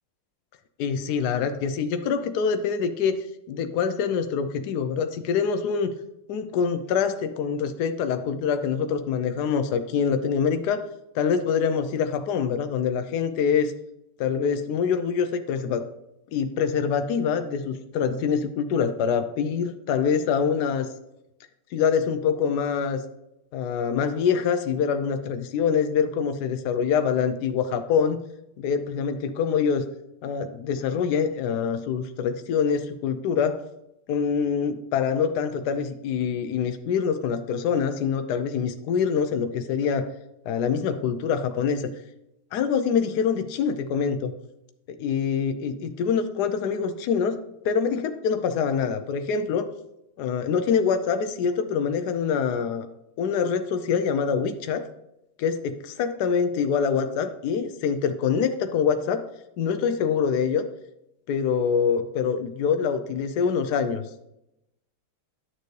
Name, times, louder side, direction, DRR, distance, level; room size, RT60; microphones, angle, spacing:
voice 1, 0.8-3.2 3.5-5.9 6.3-10.8 11.1-13.7 14.2-15.8 16.3-20.9 21.7-23.0 23.5-28.2 28.6-29.8 30.2-33.6 34.1-40.1 40.5-41.9 42.5-44.3 44.9-47.4 47.6-49.7 50.2-52.9 53.2-54.9 55.4-59.2 59.6-60.6 61.3-64.0, left 6 dB, 85° left, 9 dB, 0.8 m, -25 dB
10.5 x 6.7 x 3.2 m, 0.85 s
omnidirectional pair, 2.4 m